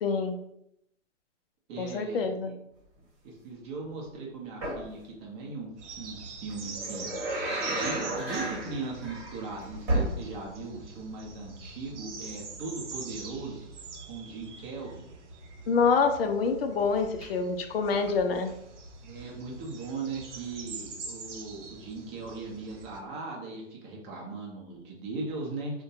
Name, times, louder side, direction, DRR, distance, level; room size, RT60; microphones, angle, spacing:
voice 1, 0.0-0.4 1.8-2.6 15.7-18.5, left 5 dB, 55° left, 6 dB, 0.5 m, -26 dB
voice 2, 1.7-2.3 3.2-7.1 7.7-13.7 14.1-15.0 18.2-18.3 19.0-25.8, right 3 dB, 25° right, -2 dB, 0.6 m, -38 dB
sound 1, 4.6-4.9 6.5-10.7 11.0-11.1 16.8-17.3 17.9-18.3 19.2-19.3, right 1 dB, 40° right, 1.0 m, -33 dB
sound 2, 5.8-23.0, right 4 dB, 70° right, 0.7 m, -44 dB
3.4 x 2.2 x 2.7 m, 0.78 s
hypercardioid pair, 135°, 37 cm